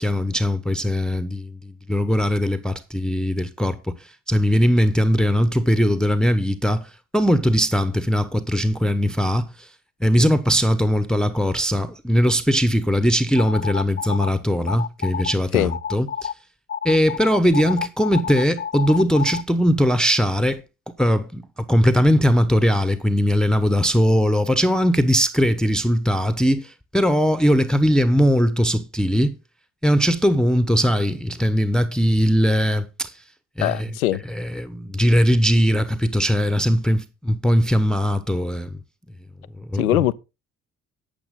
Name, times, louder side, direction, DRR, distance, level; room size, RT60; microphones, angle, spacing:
voice 1, 0.0-9.7 10.0-16.3 16.8-20.6 21.0-21.4 21.7-29.4 29.8-33.2 33.6-33.9 34.3-38.8 39.7-40.0, equal, ahead, 1.0 m, -20 dB
sound 1, 13.4-14.3 14.7-15.3 15.7-16.3 16.7-19.4, left 8 dB, 25° left, 0.7 m, -29 dB
voice 2, 33.6-34.2 39.8-40.1, left 14 dB, 85° left, 0.6 m, -21 dB
12.0 x 8.8 x 3.7 m
figure-of-eight pair, 45°, 42 cm